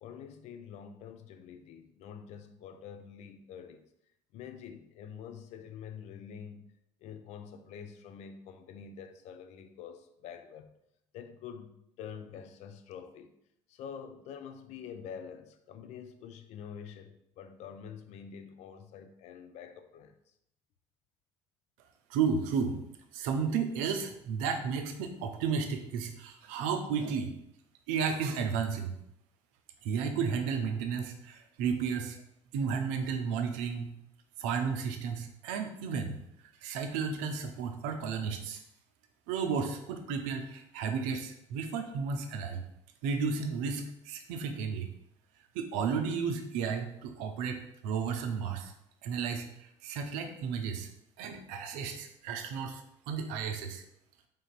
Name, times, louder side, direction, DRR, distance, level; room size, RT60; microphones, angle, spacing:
voice 1, 0.0-3.9 4.3-6.6 7.0-10.7 11.1-13.3 13.7-20.2, left 7 dB, 45° left, 9 dB, 0.5 m, -46 dB
voice 2, 22.1-22.8 23.1-27.3 27.9-28.9 29.8-32.2 32.5-33.9 34.4-36.2 36.6-38.6 39.3-42.6 43.0-44.9 45.5-48.7 49.0-50.9 51.2-53.8, right 6 dB, 55° right, 6 dB, 0.6 m, -33 dB
5.2 x 3.7 x 2.5 m, 0.77 s
figure-of-eight pair, 55°, 15 cm